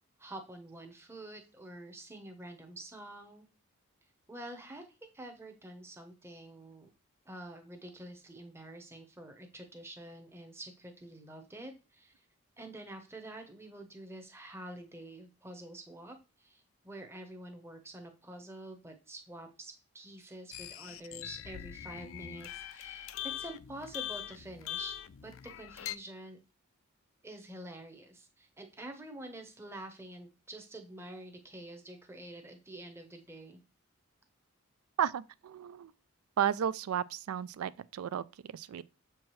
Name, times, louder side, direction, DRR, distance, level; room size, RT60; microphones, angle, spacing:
voice 1, 0.2-3.5 4.3-4.9 5.1-6.9 7.2-12.3 12.6-25.0 25.2-26.4 27.2-33.6, right 1 dB, 10° right, 0.8 m, -47 dB
sound 1, 20.5-26.0, left 11 dB, 65° left, 0.4 m, -42 dB
voice 2, 35.0-35.9 36.4-38.8, right 8 dB, 80° right, 0.3 m, -33 dB
7.3 x 4.6 x 3.1 m
head